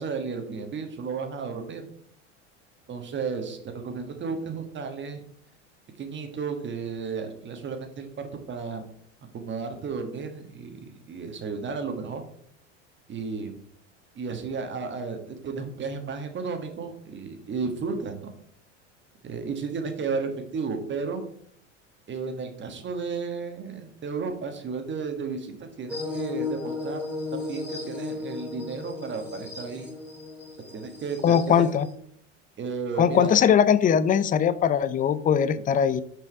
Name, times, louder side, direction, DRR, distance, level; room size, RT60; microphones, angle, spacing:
voice 1, 0.0-1.9 2.9-5.2 6.0-8.8 9.3-12.2 13.1-13.5 14.1-18.3 19.2-21.2 22.1-27.0 27.3-29.9 30.7-31.7 32.6-33.3, right 5 dB, 30° right, 6 dB, 1.4 m, -33 dB
sound 1, 25.9-31.9, left 3 dB, 5° right, 2.5 m, -35 dB
voice 2, 31.2-31.9 33.0-36.0, left 8 dB, 20° left, 15 dB, 0.5 m, -20 dB
6.2 x 5.4 x 4.6 m, 0.65 s
hypercardioid pair, 85°, 37 cm